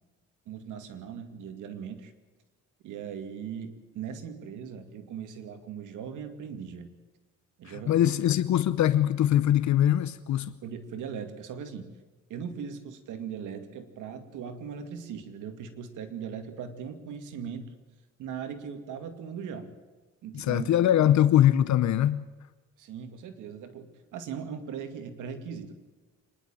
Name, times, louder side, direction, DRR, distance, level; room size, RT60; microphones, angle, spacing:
voice 1, 0.5-2.1 2.8-6.9 7.6-8.1 10.6-11.9 12.3-17.7 18.2-19.7 20.2-20.7 22.8-25.7, right 7 dB, 85° right, 2.4 m, -39 dB
voice 2, 7.6-10.6 20.3-22.3, left 11 dB, 70° left, 0.8 m, -22 dB
26.0 x 11.0 x 8.9 m
cardioid pair, 90°, 30 cm